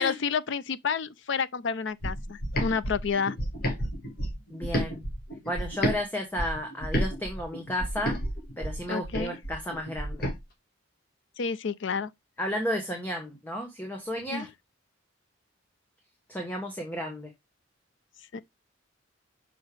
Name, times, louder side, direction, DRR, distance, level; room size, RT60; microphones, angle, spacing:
voice 1, 0.0-3.4 8.9-9.3 11.4-12.1 14.3-14.5 18.3-18.4, left 6 dB, 65° left, 0.5 m, -30 dB
sound 1, 2.0-6.0 6.4-10.4, equal, 50° left, 1.7 m, -31 dB
voice 2, 4.5-5.0 5.4-8.2 8.6-10.2 12.4-14.5 16.3-17.3, equal, 10° left, 1.1 m, -33 dB
6.4 x 4.9 x 3.2 m
head